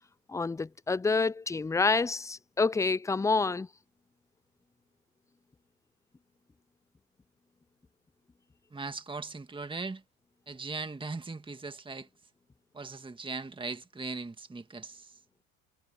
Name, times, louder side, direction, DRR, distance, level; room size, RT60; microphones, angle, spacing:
voice 1, 0.3-3.7, left 4 dB, 10° left, 0.5 m, -28 dB
voice 2, 8.7-10.0 10.5-12.1 12.7-15.1, right 3 dB, 10° right, 2.0 m, -39 dB
hypercardioid pair, 85°, 41 cm